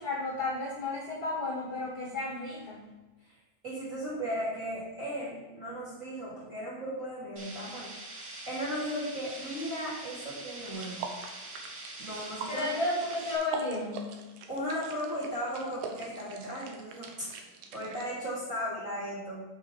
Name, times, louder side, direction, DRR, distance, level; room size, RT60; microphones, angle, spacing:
voice 1, 0.0-2.9 12.5-14.2, left 2 dB, 80° left, -7 dB, 0.8 m, -33 dB
voice 2, 3.6-8.2 8.5-11.1 12.0-12.7 14.5-17.4 17.7-19.4, equal, 25° right, -8 dB, 2.5 m, -36 dB
sound 1, 7.4-13.4, right 2 dB, 50° right, 1.5 m, -44 dB
sound 2, 10.7-18.1, right 5 dB, 75° right, 2.0 m, -44 dB
7.9 x 5.9 x 5.2 m, 1.2 s
omnidirectional pair, 4.9 m